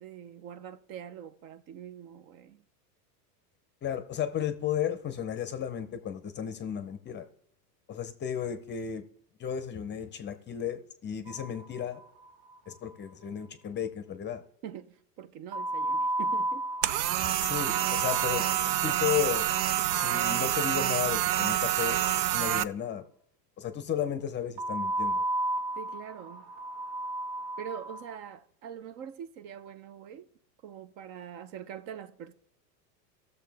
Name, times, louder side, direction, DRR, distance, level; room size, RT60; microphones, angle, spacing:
voice 1, 0.0-2.6 14.6-16.7 25.8-26.5 27.6-30.3 30.6-32.3, right 9 dB, 45° right, 0.7 m, -44 dB
voice 2, 3.8-7.3 7.9-9.0 9.4-12.0 12.7-14.4 17.4-18.4 18.8-19.5 19.9-22.1 22.3-23.0 23.6-25.2, left 9 dB, 20° left, 0.6 m, -33 dB
sound 1, 11.3-12.3 12.5-12.6 12.9-13.0 15.5-21.6 24.6-28.1, right 1 dB, 70° right, 2.1 m, -34 dB
sound 2, 16.8-22.6, right 12 dB, 85° right, 0.6 m, -27 dB
15.5 x 6.8 x 3.4 m
supercardioid pair, 125°, 49 cm